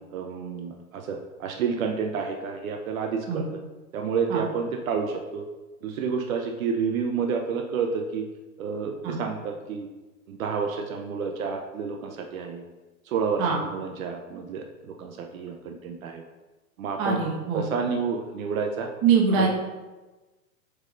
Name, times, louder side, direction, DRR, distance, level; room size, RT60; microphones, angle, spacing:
voice 1, 0.1-3.4 3.9-5.4 5.8-8.3 8.6-9.9 10.3-12.6 13.1-16.2 16.8-17.2 17.5-18.9 19.4-19.5, right 5 dB, 70° right, 3 dB, 0.8 m, -30 dB
voice 2, 17.0-17.6 19.0-19.5, right 5 dB, 30° right, -1 dB, 1.4 m, -23 dB
8.0 x 5.4 x 2.6 m, 1.2 s
hypercardioid pair, 140°, 43 cm